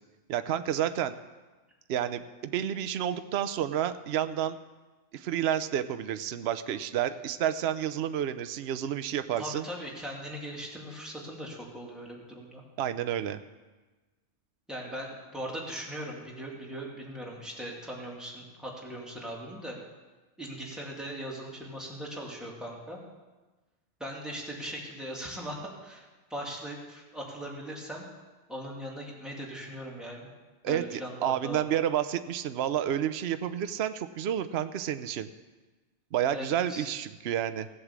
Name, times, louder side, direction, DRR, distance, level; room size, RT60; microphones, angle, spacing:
voice 1, 0.3-1.2 1.9-4.6 5.1-9.7 12.8-13.4 30.6-35.3 36.1-37.7, right 10 dB, 65° right, 11 dB, 0.9 m, -30 dB
voice 2, 9.4-12.6 14.7-19.8 20.4-23.0 24.0-28.1 28.5-30.3 30.7-31.6 36.3-37.0, equal, ahead, -3 dB, 2.7 m, -39 dB
16.5 x 8.2 x 7.4 m, 1.2 s
omnidirectional pair, 1.3 m